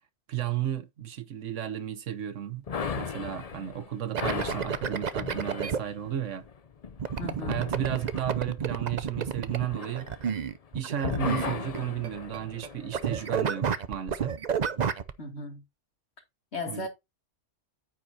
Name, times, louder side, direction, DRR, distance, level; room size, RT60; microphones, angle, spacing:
voice 1, 0.3-2.6 3.0-6.4 7.5-10.1 10.7-14.3 16.7-16.9, right 10 dB, 90° right, 1.3 m, -33 dB
sound 1, 2.7-10.7 11.0-13.3, left 6 dB, 40° left, 0.6 m, -37 dB
sound 2, 4.1-5.8 7.0-12.1 12.3-12.7 12.9-15.1, right 7 dB, 45° right, 0.7 m, -30 dB
voice 2, 7.2-7.6 15.2-15.6 16.5-16.9, left 2 dB, 65° left, 3.2 m, -36 dB
9.4 x 9.2 x 2.8 m
omnidirectional pair, 1.2 m